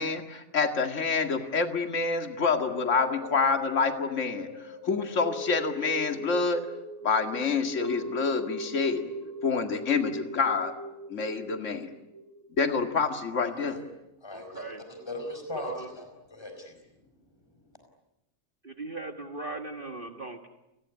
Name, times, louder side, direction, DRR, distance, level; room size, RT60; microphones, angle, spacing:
voice 1, 0.0-4.5 4.8-6.7 7.0-9.0 9.4-10.7 11.1-11.9 12.6-13.8, left 4 dB, 50° left, 6 dB, 2.4 m, -27 dB
sound 1, 2.6-13.0 13.4-13.5, equal, 80° right, 3.4 m, -40 dB
voice 2, 13.5-13.9 14.2-16.8, left 1 dB, 15° left, 5 dB, 4.9 m, -39 dB
voice 3, 14.3-14.8 15.6-15.9 18.6-20.5, right 3 dB, 35° right, 5 dB, 1.8 m, -38 dB
30.0 x 20.5 x 9.6 m, 0.91 s
omnidirectional pair, 1.6 m